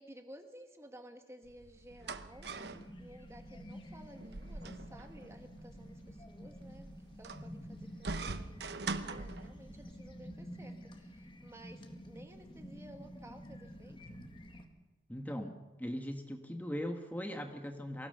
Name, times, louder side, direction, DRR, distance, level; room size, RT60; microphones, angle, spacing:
voice 1, 0.0-14.2, right 1 dB, 15° right, 6 dB, 1.6 m, -55 dB
sound 1, 1.4-9.9, right 3 dB, 70° right, 1.0 m, -44 dB
sound 2, 2.3-14.7, equal, 30° left, 1.8 m, -50 dB
voice 2, 15.1-15.5 15.8-18.1, equal, 10° left, 4 dB, 1.3 m, -39 dB
24.5 x 16.5 x 6.7 m, 1.2 s
head